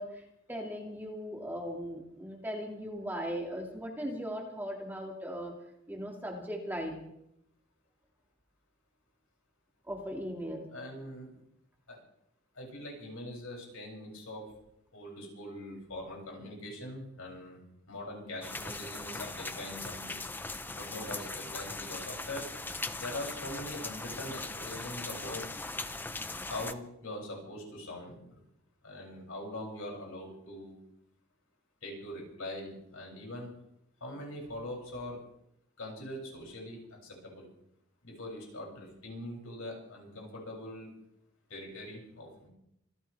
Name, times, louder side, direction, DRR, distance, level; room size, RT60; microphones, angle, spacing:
voice 1, 0.0-5.5 5.9-7.0 9.8-10.7, equal, 10° right, 0 dB, 2.3 m, -38 dB
voice 2, 10.7-11.3 11.9-12.0 12.5-14.4 14.9-20.2 20.7-22.5 22.9-25.4 26.5-28.4 28.8-30.8 31.8-33.5 34.0-35.2 35.8-37.5 38.0-40.9 41.5-42.5, left 1 dB, 80° left, -1 dB, 7.4 m, -42 dB
sound 1, 18.4-26.7, left 3 dB, 10° left, 0.5 m, -39 dB
26.5 x 14.5 x 3.5 m, 0.78 s
head